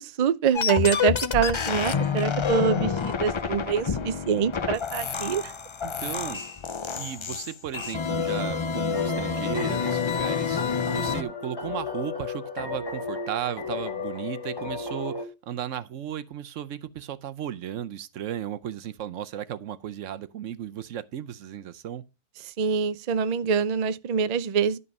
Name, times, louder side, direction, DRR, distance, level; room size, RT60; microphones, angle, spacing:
voice 1, 0.0-5.5 22.6-24.8, right 6 dB, 55° right, 0.4 m, -25 dB
sound 1, 0.5-11.2, left 6 dB, 45° left, 0.3 m, -28 dB
voice 2, 5.8-6.4 7.0-10.6 10.9-22.0, right 10 dB, 75° right, 1.0 m, -35 dB
sound 2, 8.9-15.2, left 4 dB, 20° left, 1.5 m, -34 dB
11.0 x 5.5 x 5.3 m
omnidirectional pair, 1.3 m